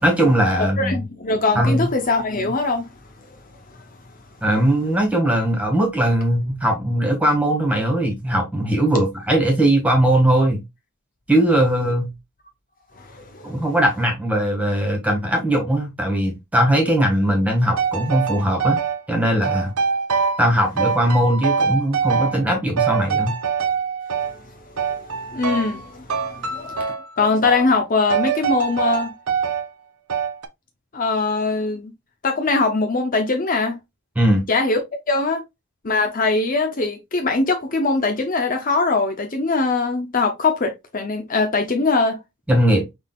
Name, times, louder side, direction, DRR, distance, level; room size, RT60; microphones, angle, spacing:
voice 1, 0.0-1.0 1.6-1.9 4.4-10.6 11.3-12.1 13.4-18.8 19.1-19.7 20.4-23.4 34.2-34.4 42.5-42.8, right 1 dB, 5° right, 1.8 m, -19 dB
voice 2, 0.6-2.8 3.7-3.8 13.0-13.5 24.2-24.3 25.0-26.9 27.2-29.1 30.9-31.9 32.2-33.8 34.5-34.8 35.1-35.4 35.8-42.2, left 3 dB, 40° left, 0.8 m, -22 dB
sound 1, 17.8-19.0 19.4-20.5 20.8-22.5 22.8-24.3 24.8-25.8 26.1-27.1 27.4-27.7 28.1-29.7 30.1-30.5, right 6 dB, 90° right, 0.8 m, -24 dB
6.2 x 3.5 x 2.4 m
head